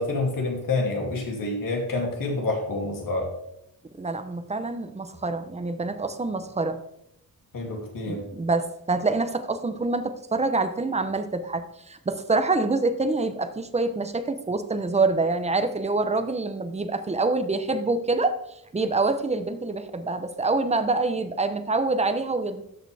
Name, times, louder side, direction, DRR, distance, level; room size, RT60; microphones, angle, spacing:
voice 1, 0.0-3.3 7.5-8.2, left 2 dB, 60° left, 0 dB, 2.7 m, -27 dB
voice 2, 4.0-6.8 8.1-18.4 18.7-22.6, right 3 dB, 20° right, 9 dB, 0.7 m, -26 dB
12.5 x 6.6 x 3.4 m, 0.77 s
wide cardioid pair, 165°, 37 cm